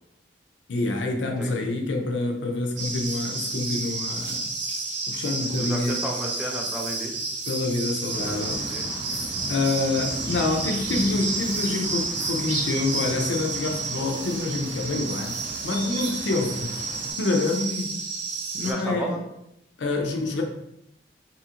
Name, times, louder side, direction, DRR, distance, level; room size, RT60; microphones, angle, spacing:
voice 1, 0.7-4.5 5.1-6.1 7.5-8.7 9.5-16.8 17.2-18.0 18.5-19.2 19.8-20.4, left 2 dB, 85° left, 3 dB, 0.5 m, -27 dB
voice 2, 1.4-1.7 5.4-7.2 8.2-8.9 18.6-19.2, equal, 5° right, -1 dB, 0.3 m, -33 dB
sound 1, 2.8-18.7, right 3 dB, 85° right, 0.5 m, -31 dB
sound 2, 8.1-17.1, equal, 65° right, 1.4 m, -37 dB
2.7 x 2.5 x 2.8 m, 0.79 s
head